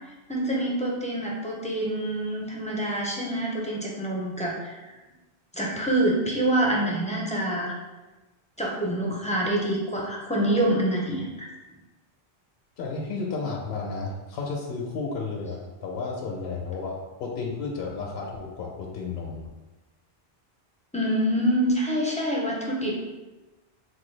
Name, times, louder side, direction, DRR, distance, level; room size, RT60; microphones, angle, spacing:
voice 1, 0.3-4.9 5.5-7.8 8.6-11.5 20.9-22.9, right 1 dB, 10° left, -4 dB, 0.3 m, -26 dB
voice 2, 12.8-19.4, left 4 dB, 70° left, -1 dB, 0.8 m, -32 dB
4.3 x 2.3 x 3.1 m, 1.1 s
omnidirectional pair, 1.1 m